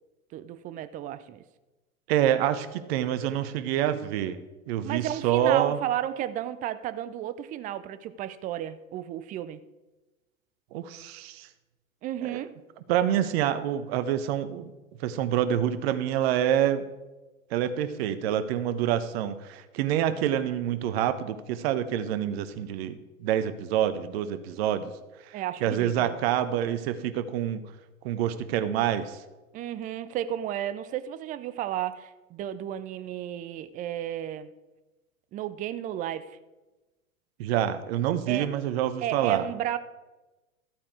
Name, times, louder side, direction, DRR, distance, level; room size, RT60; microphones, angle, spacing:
voice 1, 0.3-1.4 4.8-9.6 12.0-12.6 25.3-26.2 29.5-34.5 35.3-36.4 38.3-38.5 39.0-39.8, right 11 dB, 20° right, 0.5 m, -33 dB
voice 2, 2.1-4.4 4.7-5.8 10.7-11.5 12.2-12.4 12.9-14.7 15.0-16.9 17.5-24.9 25.3-25.4 25.6-27.6 28.0-29.2 37.4-39.4, right 10 dB, 45° right, 1.0 m, -27 dB
13.5 x 8.6 x 4.7 m
figure-of-eight pair, 90°, 41 cm